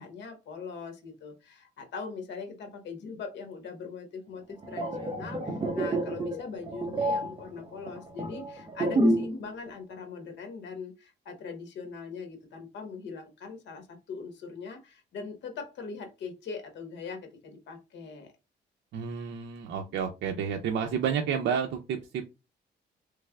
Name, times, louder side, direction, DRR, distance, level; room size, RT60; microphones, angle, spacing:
voice 1, 0.0-18.3, left 5 dB, 80° left, 1.1 m, -41 dB
sound 1, 4.5-9.4 9.7-9.9, right 1 dB, 30° right, 1.0 m, -29 dB
voice 2, 18.9-22.2, right 7 dB, 85° right, 0.5 m, -30 dB
3.3 x 3.2 x 2.2 m
cardioid pair, 115°, 18 cm